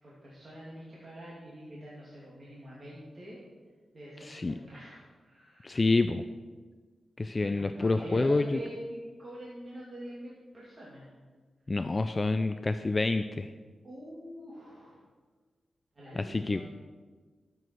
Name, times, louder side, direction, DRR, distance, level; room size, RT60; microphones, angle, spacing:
voice 1, 0.0-3.4 3.9-5.9 7.4-11.1 13.8-15.0 16.0-16.6, equal, 35° right, -7 dB, 2.6 m, -44 dB
voice 2, 4.2-4.5 5.6-6.2 7.2-8.6 11.7-13.5 16.2-16.6, left 3 dB, 30° left, 10 dB, 0.3 m, -28 dB
12.5 x 7.8 x 4.6 m, 1.4 s
wide cardioid pair, 95°, 0 cm